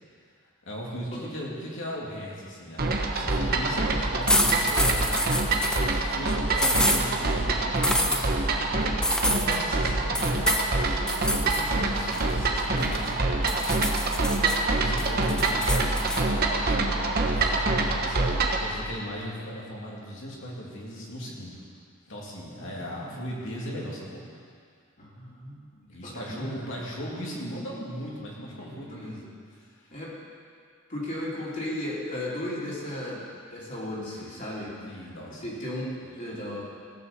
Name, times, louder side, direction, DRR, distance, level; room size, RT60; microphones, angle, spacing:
voice 1, 0.7-10.6 10.9-14.0 14.7-21.6 22.0-24.3 25.9-29.9 34.8-35.5, equal, 60° left, -4 dB, 2.8 m, -38 dB
sound 1, 2.8-18.7, right 2 dB, 45° right, 1.1 m, -26 dB
sound 2, 4.3-5.8 6.6-7.0 7.8-8.2 9.0-9.6 10.1-10.7 11.1-11.6 12.0-13.1 13.5-14.5 15.0-16.2, left 1 dB, 5° left, 0.6 m, -27 dB
voice 2, 15.0-15.5 22.5-23.3 25.0-26.7 28.8-29.2 29.9-30.1 30.9-33.2 33.5-34.8 35.0-35.1 35.4-36.6, left 1 dB, 40° left, -7 dB, 3.3 m, -36 dB
16.5 x 6.3 x 6.7 m, 2.1 s
head